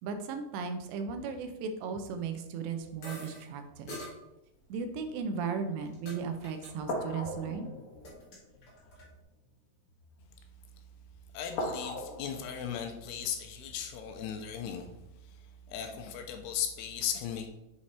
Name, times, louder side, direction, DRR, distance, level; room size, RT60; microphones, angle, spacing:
voice 1, 0.0-4.0 4.7-7.7, right 5 dB, 85° right, 7 dB, 3.0 m, -36 dB
sound 1, 2.8-4.1 4.6-4.9 5.7-5.9 6.8-10.4 10.9-11.2 11.5-15.0 15.7-15.8, left 1 dB, 65° left, 2.3 m, -42 dB
sound 2, 3.0-3.4 3.9-4.1 5.1-6.2 6.4-6.7 7.0-7.5 7.8-9.1, left 1 dB, 45° left, 2.1 m, -45 dB
voice 2, 11.3-14.9 15.2-17.5, left 8 dB, 80° left, 5 dB, 2.6 m, -37 dB
7.5 x 4.6 x 4.2 m, 0.90 s
omnidirectional pair, 4.9 m